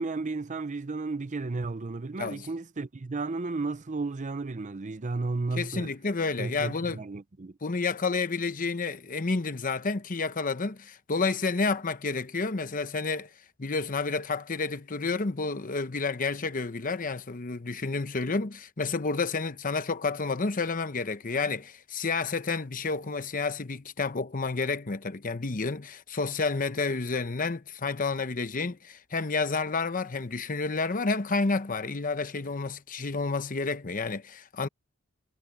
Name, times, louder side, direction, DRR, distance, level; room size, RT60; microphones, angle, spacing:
voice 1, 0.0-5.9 6.4-7.5, right 3 dB, 35° right, 0.6 m, -33 dB
voice 2, 5.6-7.0 7.6-13.3 13.6-34.7, left 4 dB, 40° left, 0.8 m, -30 dB
head